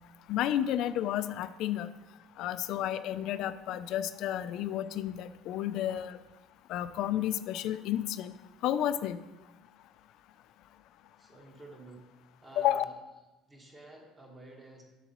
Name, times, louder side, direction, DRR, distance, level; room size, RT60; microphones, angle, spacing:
voice 1, 0.3-1.9 2.4-6.2 6.7-8.3 8.6-9.2 12.6-12.8, left 11 dB, 55° left, 13 dB, 0.4 m, -31 dB
voice 2, 11.2-12.1 12.4-12.9 13.5-14.8, right 2 dB, 15° right, 0 dB, 1.5 m, -51 dB
7.8 x 7.2 x 3.0 m, 1.0 s
cardioid pair, 160°, 0 cm